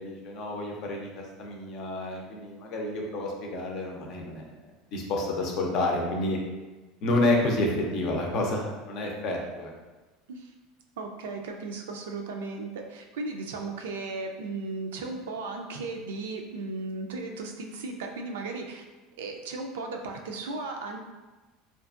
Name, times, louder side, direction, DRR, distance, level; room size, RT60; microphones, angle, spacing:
voice 1, 0.0-4.5 4.9-6.4 7.0-9.7, left 2 dB, 55° left, 0 dB, 0.5 m, -29 dB
voice 2, 11.0-18.8 19.2-21.0, right 3 dB, 90° right, 3 dB, 0.3 m, -36 dB
2.5 x 2.4 x 2.4 m, 1.2 s
supercardioid pair, 110°, 0 cm